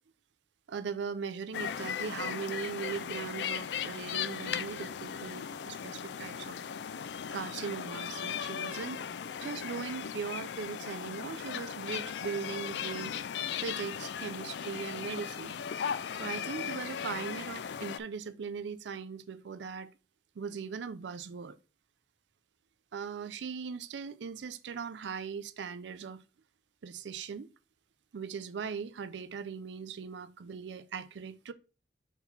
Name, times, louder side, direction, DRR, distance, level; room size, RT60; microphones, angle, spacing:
voice 1, 0.7-6.6 7.3-9.1 9.4-13.2 13.6-15.6 16.1-19.9 20.4-21.6 22.9-26.2 26.8-27.5 28.1-31.5, right 6 dB, 80° right, 0.4 m, -39 dB
sound 1, 1.5-18.0, left 8 dB, 75° left, 0.4 m, -37 dB
4.4 x 4.1 x 5.5 m
head